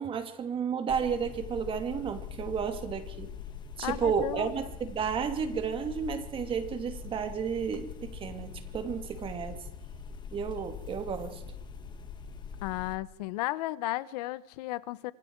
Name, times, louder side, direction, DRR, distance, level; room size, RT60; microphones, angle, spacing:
voice 1, 0.0-3.3 3.8-9.6 10.3-11.4, right 7 dB, 25° right, 7 dB, 2.6 m, -32 dB
sound 1, 0.9-13.0, left 6 dB, 20° left, 2.0 m, -43 dB
voice 2, 3.8-4.5 12.6-15.1, left 18 dB, 75° left, 17 dB, 1.2 m, -34 dB
26.0 x 26.0 x 4.8 m, 0.87 s
supercardioid pair, 145°, 20 cm